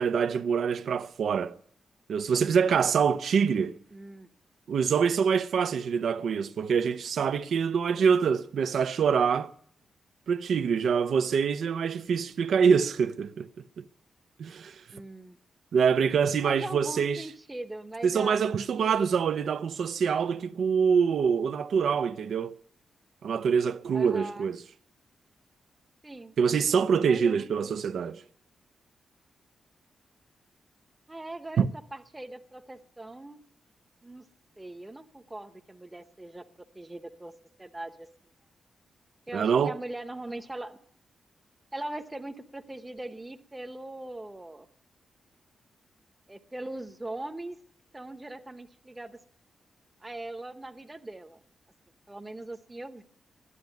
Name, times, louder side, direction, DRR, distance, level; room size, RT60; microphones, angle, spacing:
voice 1, 0.0-1.6 2.1-3.7 4.7-9.5 10.3-13.5 13.8-13.9 14.4-14.8 15.7-17.3 18.0-22.5 23.2-24.6 26.4-28.2 31.6-31.7 39.3-39.7, right 6 dB, 65° right, 0.5 m, -25 dB
voice 2, 3.9-4.3 14.9-15.4 16.4-18.4 18.8-19.1 23.9-24.5 26.0-26.4 26.7-28.2 31.1-31.7 31.9-33.4 34.0-34.2 34.6-36.5 36.7-37.3 37.6-38.1 39.3-40.8 41.7-44.7 46.3-47.6 47.9-49.2 50.0-51.4 52.1-53.0, right 2 dB, 10° right, 0.8 m, -40 dB
13.0 x 11.0 x 9.3 m
wide cardioid pair, 170°, 0 cm